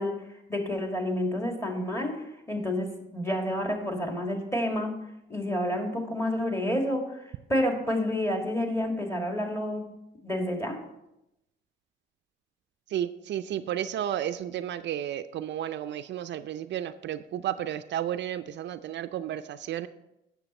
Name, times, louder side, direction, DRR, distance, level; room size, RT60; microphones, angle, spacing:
voice 1, 0.0-5.0 5.3-9.8 10.2-10.8, left 1 dB, 15° left, 2 dB, 1.9 m, -29 dB
voice 2, 12.9-19.9, right 11 dB, 65° right, 10 dB, 0.4 m, -32 dB
8.9 x 6.9 x 4.2 m, 0.87 s
cardioid pair, 90°, 20 cm